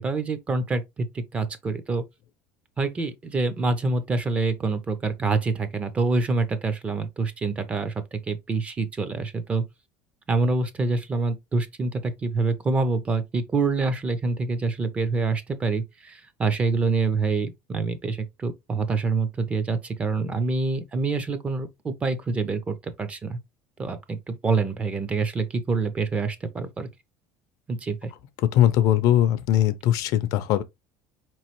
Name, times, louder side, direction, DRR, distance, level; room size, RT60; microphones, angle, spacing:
voice 1, 0.0-2.0 2.8-9.6 10.3-23.4 23.8-26.9 27.7-28.1, right 3 dB, 15° right, 0.5 m, -26 dB
voice 2, 28.5-30.6, left 12 dB, 55° left, 0.5 m, -20 dB
4.7 x 3.0 x 2.9 m
cardioid pair, 165°, 7 cm